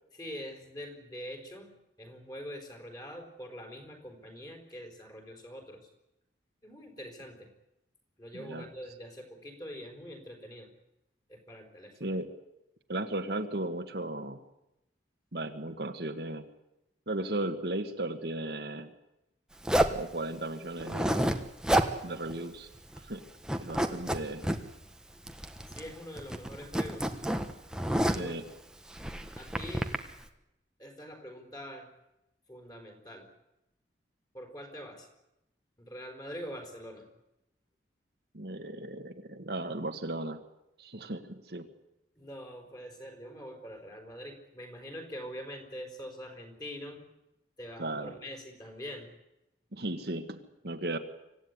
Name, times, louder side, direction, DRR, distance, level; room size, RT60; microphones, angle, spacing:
voice 1, 0.1-1.7 2.0-5.9 6.6-7.5 8.2-10.7 11.3-12.2 25.7-27.1 28.1-28.4 29.4-29.9 30.8-31.9 32.5-33.3 34.3-35.1 35.8-37.1 42.2-47.0 47.6-49.1, equal, 20° left, 3 dB, 4.5 m, -44 dB
voice 2, 8.3-8.7 12.0-12.3 12.9-14.4 15.3-16.5 17.1-18.9 19.9-21.4 22.0-22.7 23.1-23.2 23.6-24.4 28.0-28.4 38.3-40.4 40.8-41.6 47.8-48.1 49.7-51.0, right 1 dB, 60° right, 5 dB, 1.6 m, -36 dB
Zipper (clothing), 19.6-20.0 20.8-21.4 21.6-21.9 22.3-22.4 22.7-23.2 23.4-24.6 25.3-25.9 26.2-28.3 28.9-30.0, right 1 dB, 5° right, 1.2 m, -29 dB
25.0 x 15.5 x 9.6 m, 0.90 s
head